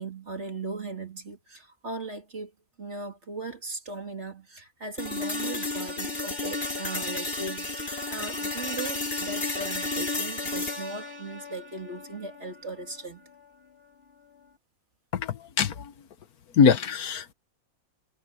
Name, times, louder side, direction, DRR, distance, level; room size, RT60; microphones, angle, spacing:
voice 1, 0.0-2.5 2.8-13.2, right 3 dB, 50° right, 3.2 m, -38 dB
sound 1, 5.0-13.0, left 3 dB, 40° left, 4.3 m, -33 dB
voice 2, 15.1-15.9 16.5-17.3, left 6 dB, 85° left, 1.7 m, -23 dB
omnidirectional pair, 1.5 m